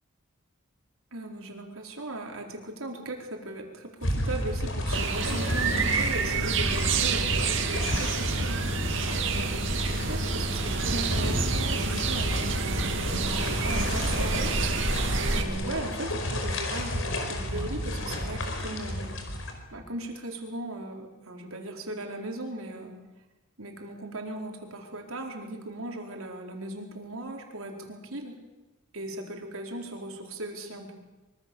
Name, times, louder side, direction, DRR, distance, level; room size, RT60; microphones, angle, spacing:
voice 1, 1.1-8.6 9.3-12.8 13.2-14.6 15.4-19.1 19.7-22.9 23.6-28.3 28.9-30.9, right 1 dB, 85° right, 2 dB, 4.5 m, -38 dB
sound 1, 4.0-19.5, left 1 dB, 65° left, 5.0 m, -32 dB
sound 2, 4.9-15.4, right 4 dB, 60° right, 2.6 m, -28 dB
25.5 x 24.0 x 7.2 m, 1.1 s
head